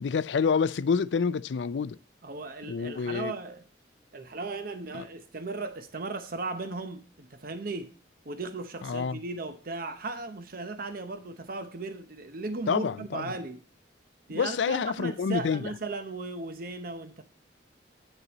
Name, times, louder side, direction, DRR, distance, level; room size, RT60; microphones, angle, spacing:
voice 1, 0.0-2.0 2.6-3.3 4.9-5.0 8.8-9.2 12.7-13.3 14.3-15.7, left 5 dB, 85° left, 0.4 m, -28 dB
voice 2, 2.2-3.6 4.1-7.9 8.2-13.6 14.3-17.2, right 3 dB, 55° right, 0.8 m, -36 dB
8.9 x 6.6 x 2.9 m
head